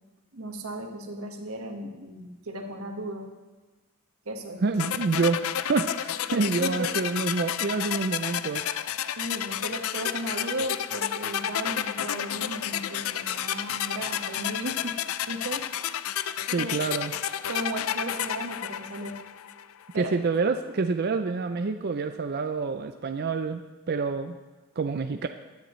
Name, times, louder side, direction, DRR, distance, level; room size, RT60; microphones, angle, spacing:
voice 1, 0.3-3.3 4.2-4.6 6.3-7.0 9.1-15.0 15.3-15.7 16.6-16.8 17.5-19.2 19.9-20.1, right 1 dB, 70° right, 2 dB, 1.6 m, -35 dB
voice 2, 4.6-8.6 16.5-17.1 19.9-23.6 23.9-24.4 24.8-25.3, right 4 dB, 45° right, 7 dB, 0.5 m, -27 dB
sound 1, 4.8-19.7, left 10 dB, 65° left, 0.4 m, -31 dB
16.0 x 10.5 x 3.2 m, 1.3 s
head